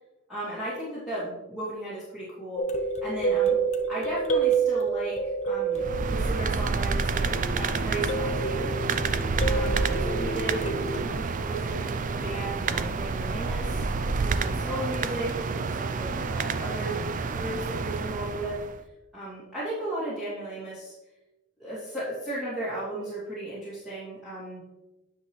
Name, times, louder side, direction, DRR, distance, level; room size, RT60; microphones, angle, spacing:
voice 1, 0.3-2.7 3.0-3.6 3.9-8.8 9.5-10.8 11.1-13.8 14.2-18.6 19.1-20.9 21.6-24.6, right 1 dB, ahead, -12 dB, 2.4 m, -35 dB
sound 1, 2.6-6.8 7.4-11.0, right 5 dB, 35° left, 0.8 m, -28 dB
sound 2, 5.8-18.8, right 4 dB, 40° right, 0.4 m, -29 dB
9.8 x 6.0 x 3.2 m, 1.1 s
head